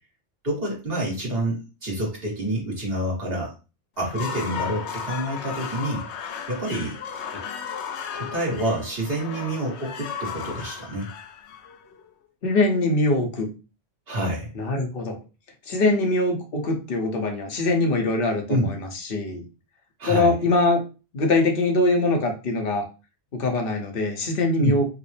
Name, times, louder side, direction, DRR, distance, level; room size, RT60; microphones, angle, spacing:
voice 1, 0.4-3.6 4.0-6.0 6.5-7.0 8.1-11.1 14.1-14.5 18.5-18.7 20.0-20.3 24.6-24.8, right 1 dB, 60° right, -2 dB, 1.7 m, -27 dB
sound 1, 4.0-12.1, left 7 dB, 80° left, 0.9 m, -35 dB
voice 2, 12.4-13.5 14.6-15.2 15.7-19.4 20.1-20.8 21.1-22.8 23.3-24.9, left 2 dB, 60° left, 3 dB, 1.0 m, -22 dB
4.9 x 2.0 x 3.2 m, 0.32 s
omnidirectional pair, 1.1 m